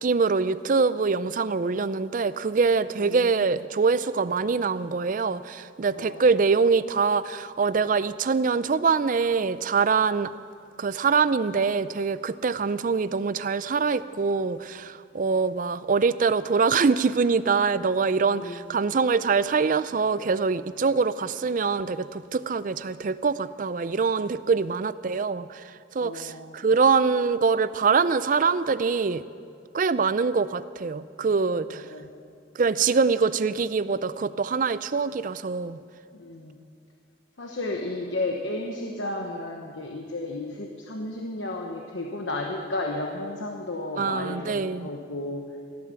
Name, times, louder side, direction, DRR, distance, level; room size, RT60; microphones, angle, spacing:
voice 1, 0.0-10.3 10.8-25.6 25.9-29.3 29.7-31.8 32.6-35.8 44.0-44.9, right 5 dB, 45° right, 15 dB, 0.4 m, -24 dB
voice 2, 3.0-3.4 5.9-6.2 18.2-18.7 26.0-26.6 31.7-32.2 36.2-36.6 37.4-45.5, left 2 dB, 85° left, 1 dB, 1.1 m, -33 dB
16.5 x 11.0 x 7.0 m, 2.3 s
head